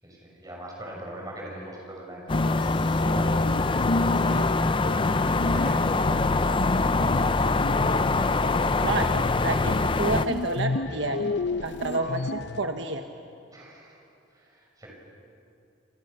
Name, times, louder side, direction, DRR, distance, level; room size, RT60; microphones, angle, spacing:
voice 1, 0.0-3.4 3.9-4.5 4.9-9.1 11.9-12.1 13.5-14.0 14.3-14.9, right 1 dB, 20° right, -1 dB, 6.4 m, -41 dB
sound 1, 2.3-12.6, left 3 dB, 60° left, 0.7 m, -32 dB
sound 2, 2.3-10.3, left 3 dB, 25° left, 0.5 m, -24 dB
voice 2, 9.4-11.3 11.6-13.0, right 3 dB, 65° right, 5 dB, 1.2 m, -29 dB
28.0 x 28.0 x 6.8 m, 2.6 s
head